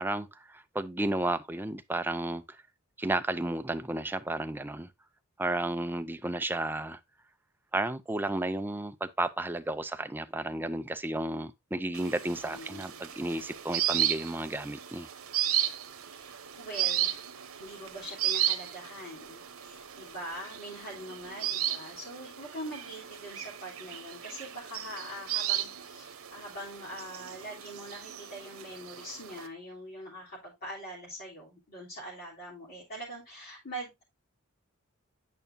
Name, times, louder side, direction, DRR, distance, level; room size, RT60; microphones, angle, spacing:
voice 1, 0.0-2.4 3.0-4.9 5.4-7.0 7.7-15.1, right 2 dB, 10° right, 0.4 m, -32 dB
sound 1, 11.9-29.5, right 12 dB, 85° right, 0.9 m, -35 dB
voice 2, 12.4-12.8 16.0-17.2 17.6-34.0, right 1 dB, 45° left, 3.4 m, -43 dB
9.1 x 5.6 x 2.7 m
head